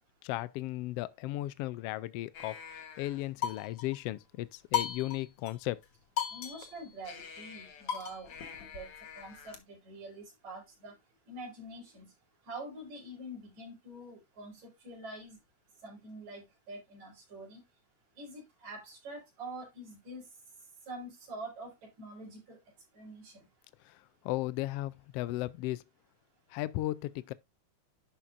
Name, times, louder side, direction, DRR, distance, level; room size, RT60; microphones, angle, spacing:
voice 1, 0.2-2.6 3.0-5.8 23.9-24.0 24.2-25.8 26.5-27.3, left 16 dB, 85° left, 1.3 m, -35 dB
sound 1, 2.3-4.0 4.7-5.5 5.8-5.9 6.2-9.6, left 9 dB, 55° left, 2.1 m, -38 dB
voice 2, 6.3-8.3 8.6-8.9 9.2-10.9 11.3-12.1 12.5-14.6 14.8-15.4 15.8-17.6 18.2-20.2 20.9-21.7 22.0-22.6 23.0-23.3, right 1 dB, 75° right, 5.5 m, -45 dB
11.0 x 5.9 x 2.5 m
omnidirectional pair, 3.3 m